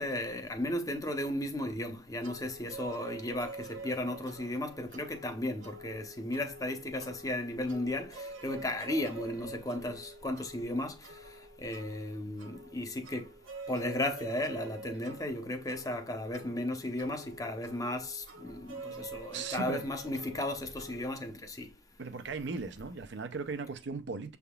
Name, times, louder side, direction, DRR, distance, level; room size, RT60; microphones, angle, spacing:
voice 1, 0.0-11.2 11.6-13.3 13.7-21.7, left 1 dB, 20° left, 0.7 m, -35 dB
sound 1, 2.2-21.1, right 3 dB, 85° right, 1.2 m, -47 dB
voice 2, 19.3-19.9 22.0-24.4, right 4 dB, 60° right, 0.6 m, -37 dB
6.7 x 3.5 x 2.3 m
head